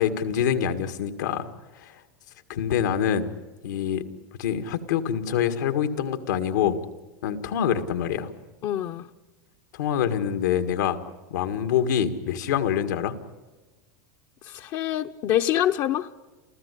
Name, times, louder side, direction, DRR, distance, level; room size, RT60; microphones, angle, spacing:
voice 1, 0.0-1.5 1.7-2.0 2.5-3.3 3.6-4.0 4.4-6.8 7.2-8.3 9.7-11.0 11.3-13.2, left 9 dB, 90° left, 1.9 m, -25 dB
voice 2, 8.6-9.1 14.4-16.1, left 12 dB, 40° left, 0.7 m, -25 dB
28.5 x 15.0 x 8.4 m
supercardioid pair, 145°, 9 cm